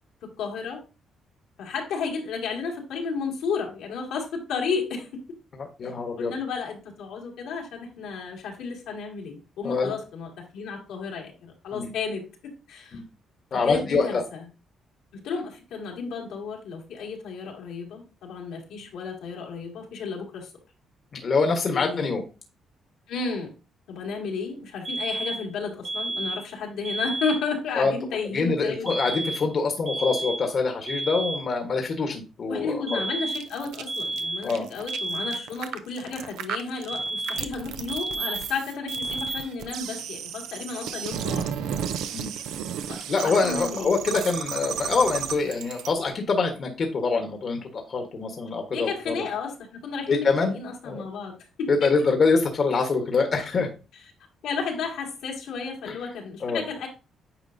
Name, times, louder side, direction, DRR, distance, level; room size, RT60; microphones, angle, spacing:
voice 1, 0.2-0.8 1.6-5.1 5.8-12.3 12.7-13.0 13.6-14.5 15.1-20.5 21.5-22.1 23.1-23.5 23.9-28.9 32.5-41.5 42.9-44.0 48.7-51.9 54.4-56.9, left 5 dB, 85° left, -1 dB, 2.0 m, -33 dB
voice 2, 5.6-6.3 9.6-9.9 11.7-11.9 12.9-13.0 13.5-14.2 21.1-22.2 27.8-27.9 28.3-33.0 34.4-34.6 42.1-42.3 43.1-49.1 50.1-50.6 50.8-51.0 51.7-53.7 55.9-56.0 56.4-56.6, left 4 dB, 50° left, 4 dB, 1.2 m, -25 dB
sound 1, 24.8-25.5 25.8-26.5 26.8-27.5 28.9-29.5 29.9-30.5 30.9-31.5 32.9-33.5 33.9-34.5 34.9-35.5 36.9-37.6 37.9-38.5 38.9-39.5, right 2 dB, 30° right, 1.2 m, -31 dB
sound 2, 33.3-45.9, right 8 dB, 90° right, 0.5 m, -34 dB
8.9 x 4.9 x 2.6 m, 0.31 s
cardioid pair, 90°, 0 cm